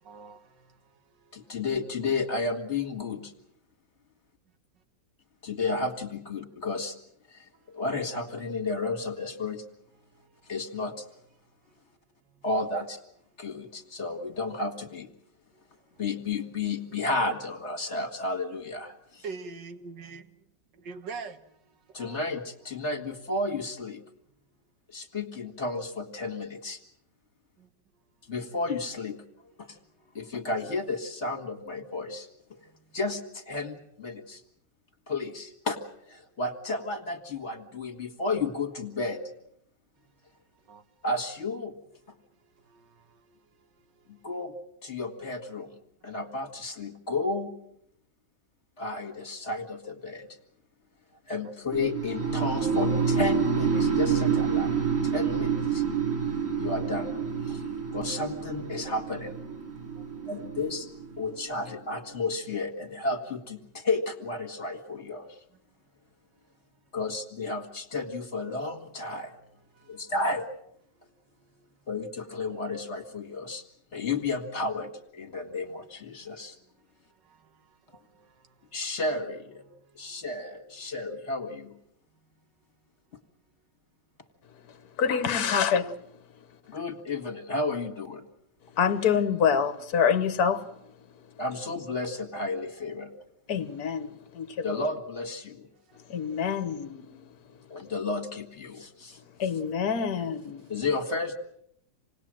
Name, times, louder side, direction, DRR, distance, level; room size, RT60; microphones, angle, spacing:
voice 1, 0.1-0.8 1.3-1.5 19.2-20.3 20.9-21.4 21.9-22.2 32.6-32.7 40.7-40.8 42.7-43.2 59.9-60.1 69.7-70.0 77.2-77.5 77.9-78.3 79.7-80.1 95.9-96.0, right 4 dB, 75° right, 2.1 m, -43 dB
voice 2, 1.3-3.3 5.4-7.0 7.3-9.6 10.5-11.1 12.4-13.0 13.4-15.1 16.0-19.2 21.9-24.0 24.9-26.8 28.3-29.2 29.6-29.8 30.1-32.6 32.9-34.4 35.1-35.8 36.0-39.2 41.0-41.7 44.1-44.6 44.8-45.7 46.0-47.5 48.8-50.3 51.3-54.7 55.0-55.8 56.6-57.1 57.4-57.6 57.9-59.4 60.3-60.9 61.2-65.4 66.9-69.4 69.9-70.5 71.9-73.6 73.9-76.6 78.7-79.6 79.9-81.8 86.7-88.2 91.4-93.1 94.6-95.7 97.7-99.2 100.7-101.4, left 3 dB, 40° left, 2.3 m, -32 dB
sound 1, 51.7-61.7, right 6 dB, 45° right, 2.2 m, -28 dB
voice 3, 84.6-86.0 88.7-90.8 91.1-91.2 93.5-94.9 96.1-97.1 99.4-100.6, left 7 dB, 60° left, 1.7 m, -26 dB
27.5 x 19.5 x 7.7 m
omnidirectional pair, 1.9 m